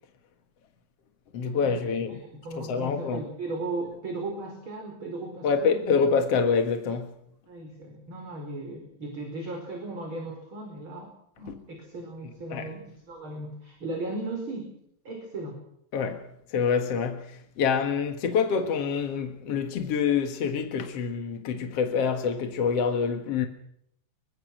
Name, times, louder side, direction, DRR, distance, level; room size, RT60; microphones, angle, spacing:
voice 1, 1.3-2.2 2.6-3.2 5.4-7.1 12.5-12.7 15.9-23.5, left 6 dB, 55° left, 1.8 m, -26 dB
voice 2, 2.1-6.0 7.5-14.7 15.0-15.6, right 2 dB, 30° right, 5.6 m, -37 dB
25.0 x 23.5 x 6.2 m
omnidirectional pair, 4.9 m